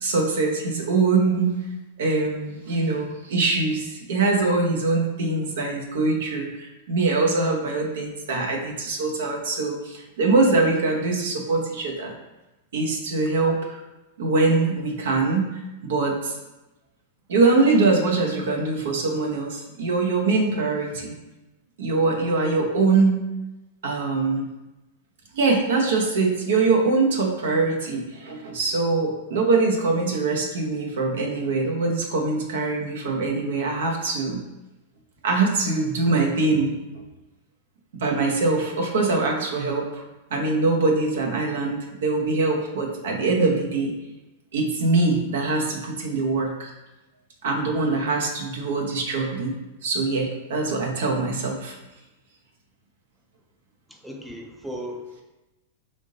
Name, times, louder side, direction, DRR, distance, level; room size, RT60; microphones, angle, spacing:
voice 1, 0.0-1.5 2.0-12.1 12.7-13.8 14.2-15.5 15.8-16.3 17.3-21.1 21.8-23.2 23.8-24.4 25.3-34.4 35.2-37.0 38.0-40.0 40.3-43.9 44.5-46.7 47.4-49.5 49.8-51.8, right 3 dB, 75° right, 0 dB, 0.8 m, -23 dB
voice 2, 53.9-55.2, equal, ahead, 1 dB, 0.5 m, -36 dB
3.5 x 2.6 x 3.8 m, 1.0 s
hypercardioid pair, 110°, 0 cm